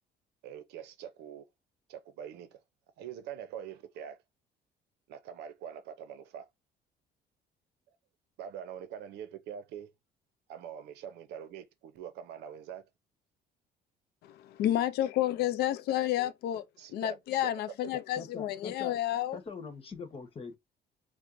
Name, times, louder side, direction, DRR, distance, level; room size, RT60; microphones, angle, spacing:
voice 1, 0.4-1.5 1.9-2.6 3.0-4.2 5.1-6.5 8.4-9.9 10.5-12.8 16.8-17.2 17.8-17.9, right 9 dB, 80° right, 0.6 m, -44 dB
voice 2, 14.2-16.7 16.9-19.4, left 13 dB, 70° left, 0.4 m, -30 dB
voice 3, 17.9-18.9 19.3-20.6, left 5 dB, 35° left, 1.0 m, -43 dB
4.4 x 2.1 x 2.5 m
cardioid pair, 110°, 17 cm